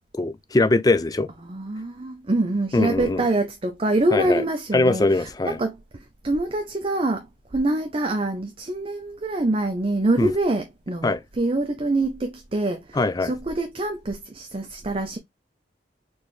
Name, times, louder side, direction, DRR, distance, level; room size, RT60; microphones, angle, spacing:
voice 1, 0.2-1.3 2.7-3.2 4.1-4.4 4.7-5.6 10.2-10.3 11.0-11.2 12.9-13.3, left 2 dB, 20° left, 0.4 m, -21 dB
voice 2, 1.4-7.3 7.5-15.2, right 2 dB, 30° right, 0.6 m, -25 dB
4.3 x 3.2 x 3.1 m
head